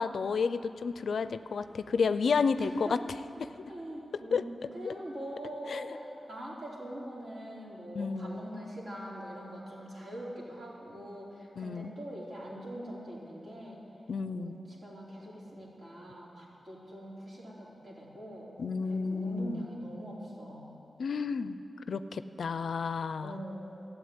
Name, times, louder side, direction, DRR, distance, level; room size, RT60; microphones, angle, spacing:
voice 1, 0.0-3.0 3.4-3.7 4.3-4.4 4.8-4.9 5.7-5.8 8.0-8.4 11.6-11.9 14.1-14.6 18.6-19.6 21.0-21.6 21.9-23.4, left 5 dB, 75° left, 12 dB, 0.4 m, -31 dB
voice 2, 2.6-3.0 3.7-13.8 14.3-18.5 18.9-20.8 23.2-23.7, right 1 dB, 60° right, -5 dB, 3.5 m, -42 dB
13.5 x 8.0 x 8.9 m, 2.8 s
wide cardioid pair, 85°, 0 cm